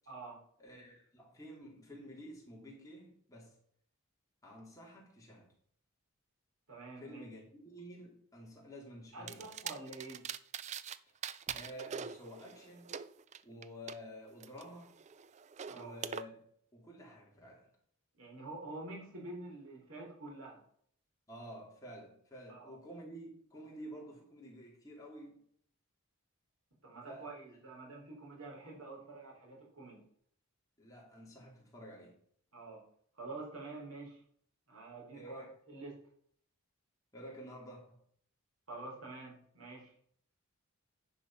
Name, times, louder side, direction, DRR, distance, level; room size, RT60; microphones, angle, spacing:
voice 1, 0.1-0.4 6.7-7.3 9.1-10.3 15.6-16.0 18.1-20.6 22.5-22.7 26.8-30.1 32.5-32.9 33.1-34.2 34.7-35.4 35.7-36.0 38.7-39.9, right 2 dB, 75° right, 3.8 m, -47 dB
voice 2, 0.6-3.6 4.4-5.5 7.0-9.5 11.5-12.9 13.4-14.9 15.7-16.4 16.7-17.7 21.3-25.4 27.1-27.3 30.8-32.2 35.1-35.5 37.1-38.0, equal, 15° left, 3.0 m, -50 dB
sound 1, 9.3-11.0 11.2-14.0 14.4-16.2, right 7 dB, 30° right, 0.3 m, -43 dB
10.0 x 5.4 x 5.6 m
head